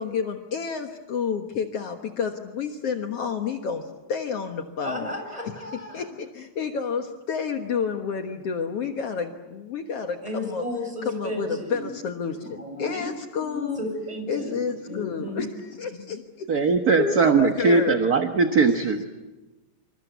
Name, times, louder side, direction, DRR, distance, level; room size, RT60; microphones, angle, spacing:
voice 1, 0.0-3.8 4.1-5.1 5.9-10.7 11.0-13.8 14.3-15.5 15.8-16.2 16.6-18.0, left 6 dB, 60° left, 5 dB, 2.3 m, -30 dB
voice 2, 4.8-6.0 10.2-11.9 12.4-13.1 13.8-14.6 14.9-15.4, equal, 10° right, 3 dB, 7.1 m, -33 dB
voice 3, 16.5-19.0, right 4 dB, 45° right, 6 dB, 1.3 m, -20 dB
27.5 x 26.5 x 8.2 m, 1.1 s
omnidirectional pair, 3.3 m